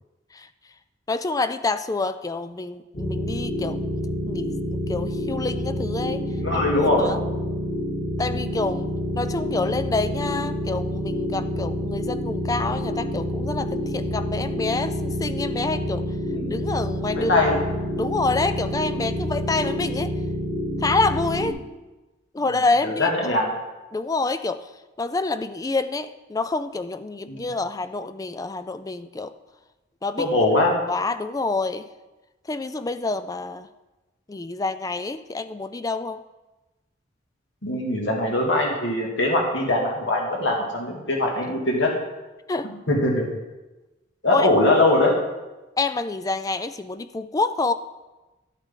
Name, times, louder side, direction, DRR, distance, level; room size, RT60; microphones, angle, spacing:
voice 1, 1.1-3.8 4.3-6.2 6.5-7.2 8.2-8.9 9.1-16.1 16.5-17.4 18.0-20.1 20.8-21.6 22.3-23.4 23.9-24.7 25.0-29.3 30.0-30.3 30.9-31.9 32.5-33.7 34.3-36.2 42.5-42.7 44.3-44.5 45.8-47.7, left 3 dB, 20° left, 11 dB, 0.4 m, -27 dB
sound 1, 2.9-21.5, left 1 dB, 40° left, 3.1 m, -28 dB
voice 2, 6.3-7.1 8.3-8.4 16.3-16.6 17.1-17.6 22.4-22.5 22.8-23.5 27.3-27.5 30.2-30.7 37.6-41.9 42.9-43.3 44.2-45.2, left 2 dB, 65° left, -1 dB, 2.3 m, -22 dB
12.5 x 8.2 x 3.8 m, 1.1 s
head